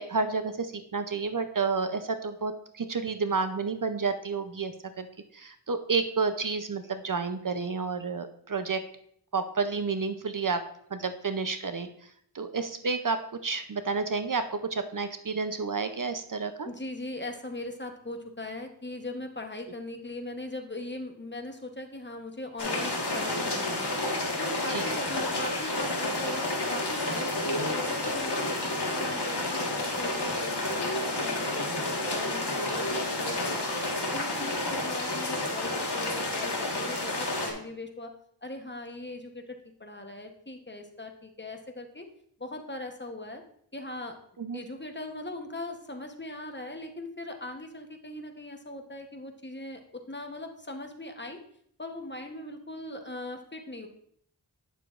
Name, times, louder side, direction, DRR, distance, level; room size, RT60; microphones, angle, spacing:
voice 1, 0.0-5.1 5.3-8.8 9.3-10.6 10.9-11.9 12.3-16.7 24.7-24.8 44.4-44.6, right 4 dB, 50° right, 9 dB, 0.6 m, -30 dB
voice 2, 16.6-23.9 24.4-33.7 34.1-38.1 38.4-42.1 42.4-43.4 43.7-44.2 44.5-51.4 51.8-53.9, left 2 dB, 25° left, 4 dB, 1.0 m, -40 dB
sound 1, 22.6-37.5, left 2 dB, 70° left, 1.5 m, -30 dB
9.0 x 6.7 x 2.4 m, 0.67 s
wide cardioid pair, 40°, 42 cm